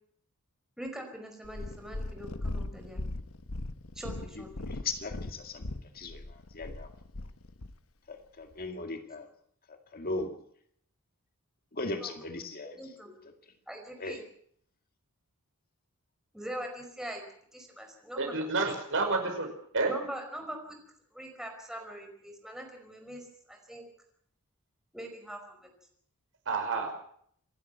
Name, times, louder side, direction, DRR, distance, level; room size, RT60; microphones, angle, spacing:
voice 1, 0.8-3.0 4.0-4.9 8.8-8.9 11.8-12.1 12.8-13.1 13.7-14.2 16.3-17.2 17.5-18.3 19.8-20.8 21.1-23.9 24.9-25.7, right 1 dB, ahead, 3 dB, 5.1 m, -42 dB
Purr, 1.4-7.8 8.5-8.6, left 2 dB, 70° left, 1.2 m, -39 dB
voice 2, 4.7-6.2 6.5-6.9 8.1-9.3 9.7-10.4 11.7-12.8 14.0-14.2, left 3 dB, 45° left, 5 dB, 2.1 m, -38 dB
voice 3, 18.2-19.9 26.5-26.9, right 3 dB, 60° right, 3 dB, 5.7 m, -30 dB
27.0 x 12.0 x 8.0 m, 0.66 s
head